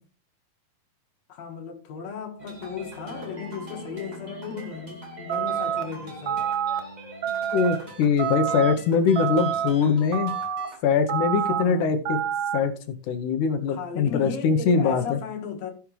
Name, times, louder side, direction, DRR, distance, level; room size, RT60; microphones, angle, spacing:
voice 1, 1.3-6.4 11.4-12.0 13.7-15.7, left 6 dB, 55° left, 2.5 m, -36 dB
sound 1, 2.4-10.8, equal, 20° right, 1.2 m, -42 dB
sound 2, 5.3-5.8 6.3-6.8 7.2-7.8 8.2-8.7 9.2-9.7 10.1-10.7 11.1-11.6 12.1-12.6, right 9 dB, 65° right, 1.2 m, -27 dB
voice 2, 7.5-10.3 10.8-12.2 12.5-12.7 13.1-15.2, left 5 dB, 70° left, 2.1 m, -22 dB
15.0 x 6.0 x 3.2 m
omnidirectional pair, 4.1 m